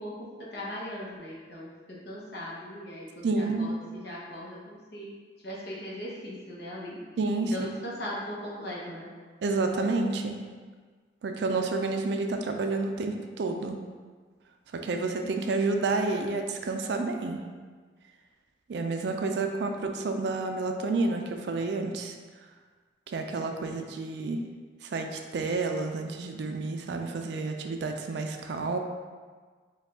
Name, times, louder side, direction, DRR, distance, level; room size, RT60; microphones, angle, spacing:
voice 1, 0.0-5.1 5.4-7.0 7.4-9.1 19.6-20.2, left 1 dB, 60° left, -5 dB, 0.9 m, -39 dB
voice 2, 3.2-3.7 7.2-7.5 9.4-10.4 11.2-13.8 14.7-17.4 18.7-22.1 23.1-24.4 24.8-28.8, right 3 dB, 65° right, 4 dB, 0.3 m, -29 dB
4.8 x 2.3 x 3.5 m, 1.5 s
head